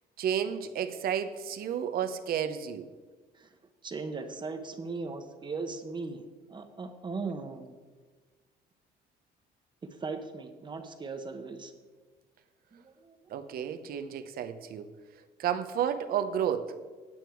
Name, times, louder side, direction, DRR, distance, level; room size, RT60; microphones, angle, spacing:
voice 1, 0.2-2.9 13.3-14.9 15.4-16.8, right 8 dB, 60° right, 9 dB, 0.8 m, -31 dB
voice 2, 3.8-6.2 6.5-7.7 9.8-11.7 12.7-13.2, right 4 dB, 25° right, 6 dB, 1.0 m, -38 dB
9.0 x 8.9 x 4.6 m, 1.4 s
cardioid pair, 110°, 17 cm